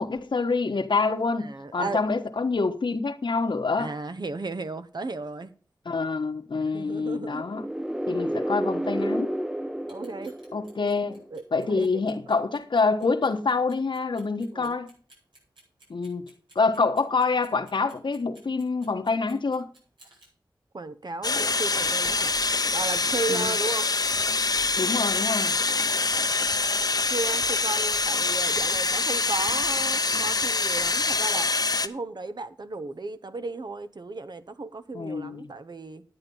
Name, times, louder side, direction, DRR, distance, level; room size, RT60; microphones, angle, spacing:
voice 1, 0.0-3.9 5.8-7.6 8.1-9.3 10.5-11.2 11.5-14.9 15.9-16.2 16.5-19.7 23.3-23.5 24.8-25.6 34.9-35.5, left 4 dB, 80° left, 1.3 m, -26 dB
voice 2, 1.4-2.0 3.8-5.5 6.7-7.5 9.9-10.4 11.3-12.2 14.5-14.8 20.7-22.4 22.7-23.9 27.1-31.5 31.8-36.0, right 3 dB, 65° right, 1.0 m, -34 dB
sound 1, 7.4-11.2, equal, 5° right, 0.7 m, -30 dB
Clock, 9.8-20.3, right 2 dB, 90° right, 7.3 m, -56 dB
sound 2, 21.2-31.9, left 3 dB, 55° left, 0.8 m, -25 dB
10.5 x 9.0 x 5.5 m
wide cardioid pair, 60°, 8 cm